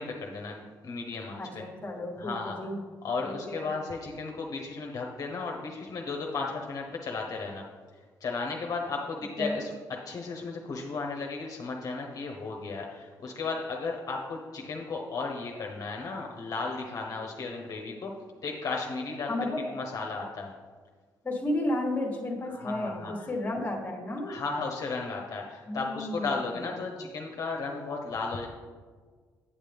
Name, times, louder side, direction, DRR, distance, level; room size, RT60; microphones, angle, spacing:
voice 1, 0.0-1.4 2.2-2.6 3.0-7.6 8.2-18.2 18.4-20.5 22.4-23.3 24.3-28.5, left 4 dB, 50° left, 1 dB, 0.9 m, -35 dB
voice 2, 1.4-2.8 3.2-3.7 9.4-9.6 19.3-19.7 21.2-24.3 25.7-26.6, left 1 dB, 20° left, 1 dB, 1.4 m, -33 dB
8.7 x 7.4 x 3.5 m, 1.5 s
cardioid pair, 110°, 7 cm